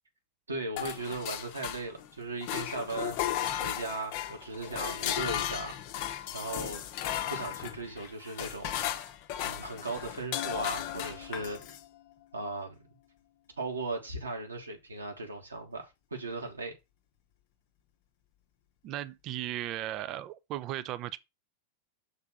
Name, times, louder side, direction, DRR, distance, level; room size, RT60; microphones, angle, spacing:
voice 1, 0.5-3.2 3.6-5.7 6.3-6.8 7.3-9.0 9.4-11.6 12.3-12.8 13.6-16.7, right 2 dB, 75° right, 1.6 m, -37 dB
sound 1, 0.8-2.1 2.4-11.8, left 11 dB, 45° left, 0.7 m, -35 dB
voice 2, 18.8-21.2, right 13 dB, 35° right, 0.5 m, -36 dB
6.7 x 3.5 x 5.9 m
figure-of-eight pair, 90°, 0 cm